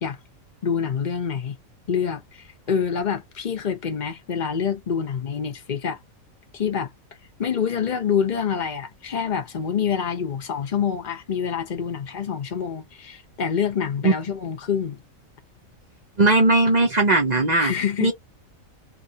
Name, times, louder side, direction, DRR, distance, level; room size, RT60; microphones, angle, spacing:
voice 1, 0.6-1.6 1.9-6.0 6.5-6.9 7.4-15.0 17.6-18.1, left 7 dB, 40° left, 0.9 m, -26 dB
voice 2, 16.2-17.7 18.0-18.1, right 2 dB, 40° right, 0.7 m, -18 dB
2.8 x 2.6 x 2.7 m
omnidirectional pair, 1.4 m